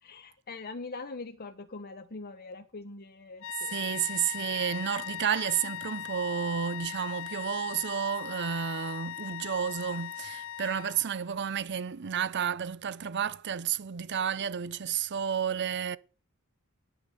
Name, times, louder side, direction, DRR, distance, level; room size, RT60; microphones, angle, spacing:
voice 1, 0.0-3.8, left 3 dB, 45° left, 1.0 m, -42 dB
sound 1, 3.4-11.3, left 12 dB, 65° left, 0.5 m, -39 dB
voice 2, 3.7-16.0, right 8 dB, 55° right, 0.6 m, -31 dB
11.0 x 8.6 x 6.6 m
head